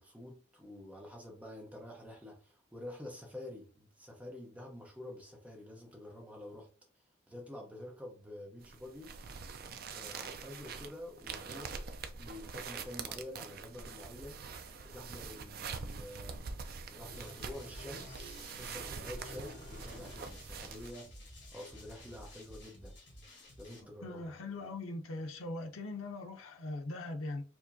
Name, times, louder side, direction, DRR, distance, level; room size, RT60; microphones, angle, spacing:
voice 1, 0.0-6.7 7.3-9.1 9.9-14.5 14.8-16.4 16.9-21.2 21.5-23.0 23.6-24.3, left 1 dB, 5° right, 0.8 m, -48 dB
sound 1, 8.6-20.9, right 5 dB, 45° right, 0.4 m, -45 dB
sound 2, 17.0-23.8, left 1 dB, 55° left, 1.5 m, -51 dB
voice 2, 24.0-27.4, left 2 dB, 85° left, 0.7 m, -40 dB
4.7 x 2.8 x 2.7 m
head